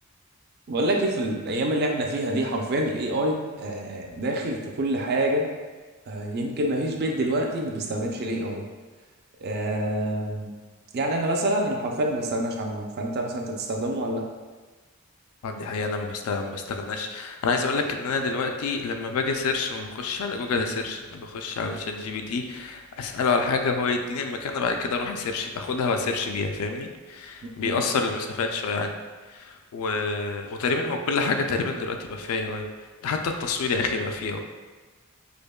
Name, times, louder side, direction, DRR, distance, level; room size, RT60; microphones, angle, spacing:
voice 1, 0.7-5.5 6.1-8.7 9.4-10.5 10.9-14.3 27.6-27.8, right 1 dB, 45° right, 1 dB, 0.4 m, -27 dB
voice 2, 15.4-28.9 29.7-32.6 33.0-34.4, left 4 dB, 75° left, 5 dB, 0.3 m, -27 dB
5.1 x 2.1 x 2.2 m, 1.3 s
head